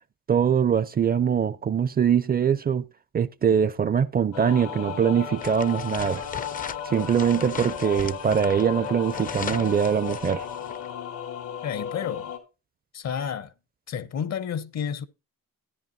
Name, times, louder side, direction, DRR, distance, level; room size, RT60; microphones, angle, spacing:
voice 1, 0.3-2.9 3.1-6.3 6.8-10.4, right 7 dB, 30° right, 0.5 m, -23 dB
sound 1, 4.3-12.4, left 8 dB, 80° left, 2.1 m, -35 dB
sound 2, 5.4-10.9, left 6 dB, 30° left, 0.5 m, -38 dB
voice 2, 11.6-12.3 12.9-13.5 13.9-15.1, left 8 dB, 60° left, 0.9 m, -30 dB
13.0 x 10.5 x 2.7 m
cardioid pair, 90°, 30 cm